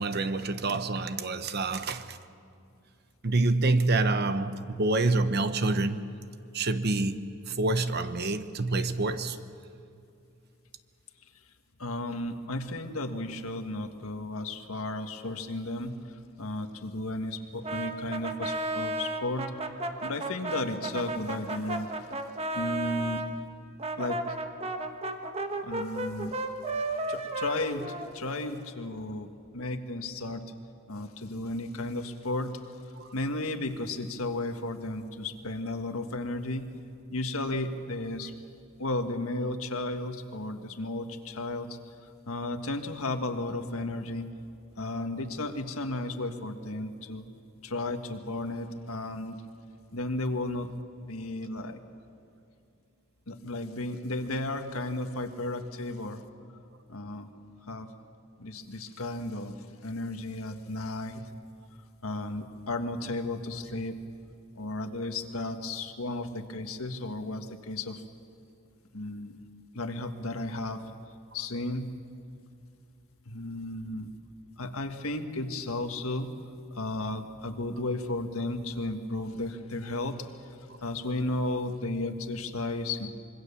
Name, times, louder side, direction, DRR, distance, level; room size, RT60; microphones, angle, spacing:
voice 1, 0.0-2.2 3.2-6.1 6.5-9.4 33.0-33.1, right 2 dB, 50° right, 1.0 m, -27 dB
voice 2, 11.8-15.9 16.4-19.5 20.0-21.9 22.5-23.2 24.0-24.2 25.6-26.4 27.1-27.9 28.1-30.4 30.9-32.5 33.1-36.7 37.1-38.3 38.8-41.8 42.3-44.3 44.8-47.3 47.6-49.4 49.9-50.7 51.1-51.8 53.3-56.2 56.9-57.3 57.7-57.9 58.4-59.6 59.8-61.2 62.0-64.0 64.5-68.0 68.9-69.4 69.7-70.8 71.3-71.9 73.2-74.1 74.6-76.3 76.7-80.2 80.8-83.1, left 2 dB, 85° left, 1.7 m, -34 dB
Brass instrument, 17.6-23.3 23.8-28.6, right 2 dB, 30° right, 1.2 m, -34 dB
25.5 x 23.0 x 7.1 m
head